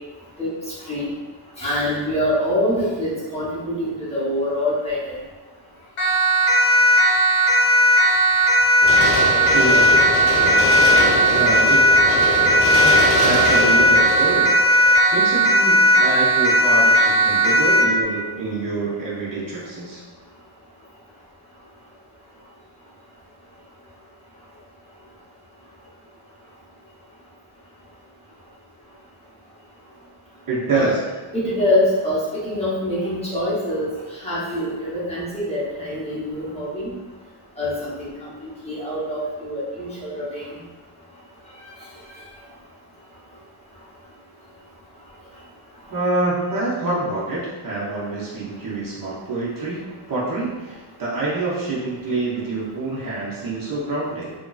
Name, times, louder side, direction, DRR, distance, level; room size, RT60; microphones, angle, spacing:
voice 1, 1.6-5.1 30.7-30.9 31.3-33.9 34.2-36.9 37.6-40.6, left 1 dB, 15° left, -10 dB, 0.6 m, -25 dB
Siren, 6.0-18.0, equal, 90° left, 0.8 m, -16 dB
sound 1, 8.8-16.0 16.3-16.4, left 2 dB, 55° left, 0.6 m, -24 dB
voice 2, 9.5-9.9 11.3-11.9 13.2-20.0 30.5-31.0 45.9-49.8 50.1-54.3, right 2 dB, 45° right, -7 dB, 0.6 m, -26 dB
2.8 x 2.5 x 2.2 m, 1.3 s
wide cardioid pair, 180°, 49 cm